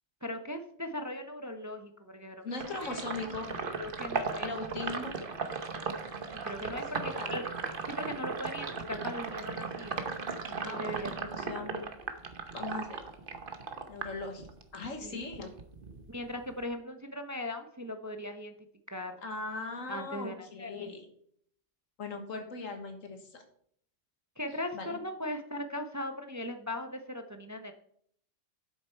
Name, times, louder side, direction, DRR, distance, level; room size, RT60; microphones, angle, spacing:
voice 1, 0.2-3.0 3.8-4.5 4.8-5.3 6.4-7.5 7.9-10.0 10.5-11.8 15.0-15.2 16.1-18.5 18.9-19.2 19.9-20.7 24.4-27.7, left 1 dB, 20° right, 6 dB, 0.6 m, -39 dB
voice 2, 2.4-3.6 4.4-5.2 6.9-7.4 10.6-11.8 12.5-13.0 13.9-14.5 14.7-15.5 19.2-21.1 22.0-23.4 24.7-25.0, left 3 dB, 85° left, 5 dB, 1.9 m, -39 dB
Sink (filling or washing), 2.6-14.9 15.2-16.6, right 4 dB, 45° right, 1.1 m, -37 dB
10.0 x 7.9 x 4.5 m, 0.66 s
omnidirectional pair, 1.3 m